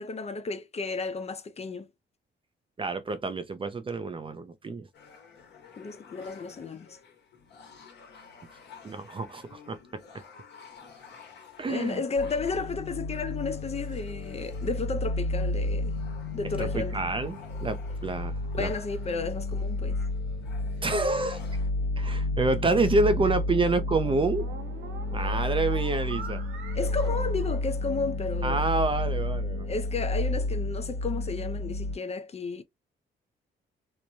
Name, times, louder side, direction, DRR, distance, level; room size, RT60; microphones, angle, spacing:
voice 1, 0.0-1.9 5.8-7.0 11.7-15.9 16.3-17.0 18.6-20.0 26.7-28.6 29.7-32.6, left 4 dB, 30° left, 0.5 m, -33 dB
voice 2, 2.8-4.9 8.8-10.0 11.6-12.0 16.6-18.7 20.8-21.4 22.0-24.5 25.1-26.4 28.4-29.7, right 3 dB, 25° right, 0.5 m, -28 dB
sound 1, 4.9-21.7, left 5 dB, 60° left, 1.2 m, -52 dB
sound 2, 12.2-32.0, left 2 dB, 85° left, 1.3 m, -31 dB
sound 3, 22.8-28.3, right 5 dB, 80° right, 0.9 m, -45 dB
3.0 x 2.1 x 2.5 m
cardioid pair, 90°, 20 cm